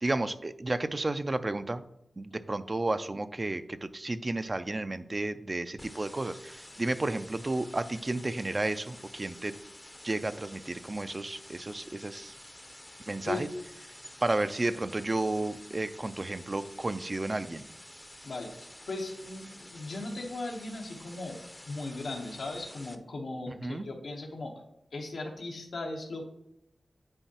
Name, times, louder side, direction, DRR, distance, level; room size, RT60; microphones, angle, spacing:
voice 1, 0.0-1.8 2.2-9.6 10.0-12.4 13.1-13.5 14.2-17.6 23.5-23.9, right 2 dB, 35° right, 11 dB, 0.4 m, -32 dB
sound 1, 5.8-23.0, left 1 dB, 15° left, 0.5 m, -50 dB
voice 2, 18.2-21.4 21.7-24.5 24.9-26.3, left 2 dB, 85° left, 1 dB, 0.9 m, -38 dB
8.8 x 4.5 x 2.8 m, 0.80 s
cardioid pair, 60°, 0 cm